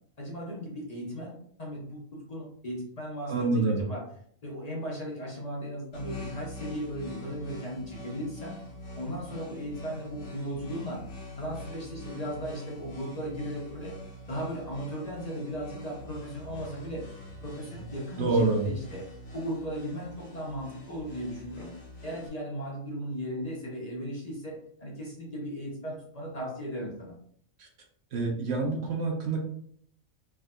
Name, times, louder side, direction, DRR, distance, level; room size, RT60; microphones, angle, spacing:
voice 1, 0.2-1.3 1.6-4.1 4.4-8.6 9.0-11.0 11.4-14.0 14.3-17.0 17.4-19.0 19.3-21.7 22.0-27.1, equal, 40° left, -3 dB, 0.6 m, -37 dB
voice 2, 3.3-3.8 18.2-18.6 27.6-27.7 28.1-29.4, right 3 dB, 60° right, 1 dB, 0.8 m, -26 dB
sound 1, 5.9-22.3, equal, 60° left, 1.2 m, -44 dB
3.4 x 2.6 x 2.2 m, 0.62 s
omnidirectional pair, 1.4 m